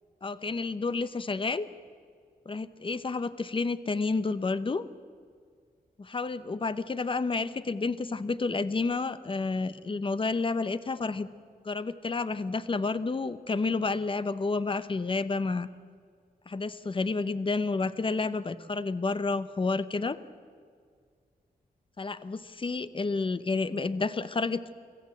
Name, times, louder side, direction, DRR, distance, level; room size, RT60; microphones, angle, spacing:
voice 1, 0.2-1.7 2.5-4.8 6.0-11.3 11.6-15.7 16.5-20.2 22.0-24.8, left 3 dB, 35° left, 14 dB, 0.8 m, -30 dB
25.0 x 15.0 x 7.8 m, 2.1 s
wide cardioid pair, 130°, 16 cm